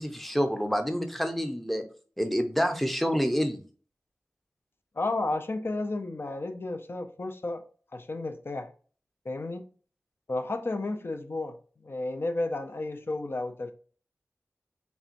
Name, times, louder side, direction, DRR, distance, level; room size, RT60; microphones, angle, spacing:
voice 1, 0.0-1.8 2.2-3.6, equal, 5° left, 6 dB, 0.6 m, -27 dB
voice 2, 5.0-7.6 7.9-8.7 9.2-9.6 10.3-11.6 11.8-13.7, left 2 dB, 45° left, 6 dB, 0.6 m, -32 dB
4.3 x 3.3 x 2.5 m, 0.41 s
wide cardioid pair, 85°, 5 cm